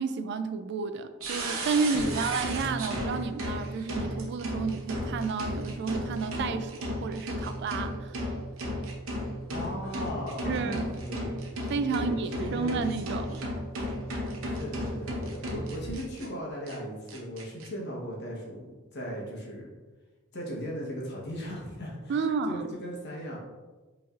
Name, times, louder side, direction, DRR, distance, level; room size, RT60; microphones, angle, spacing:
voice 1, 0.0-8.2 10.4-10.9 11.7-13.3 22.1-22.7, right 5 dB, 55° right, 10 dB, 0.3 m, -31 dB
sound 1, 1.2-16.3 16.7-16.8 17.1-17.7, equal, 75° right, 0.8 m, -34 dB
voice 2, 1.9-2.3 9.5-11.5 11.9-12.8 14.4-19.7 20.3-22.1 22.5-23.4, equal, 55° left, -3 dB, 1.1 m, -37 dB
5.0 x 3.2 x 2.5 m, 1.2 s
head